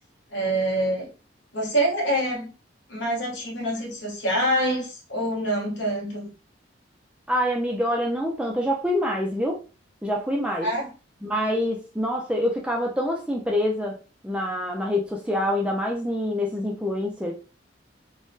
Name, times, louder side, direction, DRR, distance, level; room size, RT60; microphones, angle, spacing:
voice 1, 0.3-1.1 1.5-2.5 2.9-6.3 10.6-10.9, right 1 dB, 65° left, 0 dB, 1.1 m, -25 dB
voice 2, 7.3-9.6 10.0-10.7 11.2-14.0 14.2-17.3, left 1 dB, 5° right, 0 dB, 0.4 m, -26 dB
3.6 x 2.2 x 2.6 m, 0.33 s
head